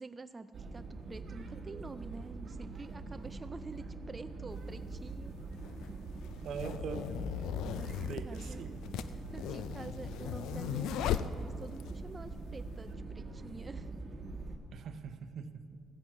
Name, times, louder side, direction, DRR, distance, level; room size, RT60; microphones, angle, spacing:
voice 1, 0.0-5.3 5.7-5.9 7.8-8.7 9.1-12.9 13.1-13.9, right 3 dB, 25° right, 9 dB, 0.4 m, -48 dB
sound 1, 0.5-14.6, right 3 dB, 50° right, 1.2 m, -44 dB
sound 2, 4.5-4.6 5.5-11.9, left 9 dB, 90° left, 0.4 m, -37 dB
voice 2, 6.4-7.2 8.0-8.9 14.7-15.8, right 6 dB, 70° right, 10 dB, 0.7 m, -42 dB
15.0 x 8.7 x 4.8 m, 2.3 s
cardioid pair, 90°, 0 cm